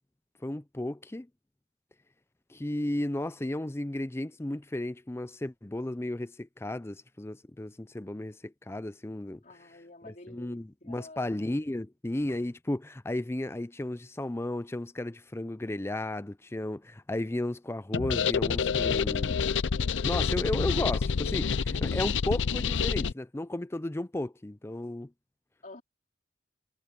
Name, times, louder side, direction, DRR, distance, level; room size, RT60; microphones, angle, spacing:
voice 1, 0.4-1.3 2.5-9.4 10.0-19.4 20.0-25.1, left 1 dB, 15° left, 0.5 m, -34 dB
voice 2, 9.4-11.3 25.6-25.8, left 2 dB, 45° left, 4.1 m, -49 dB
sound 1, 17.9-23.1, left 6 dB, 80° left, 0.6 m, -28 dB
head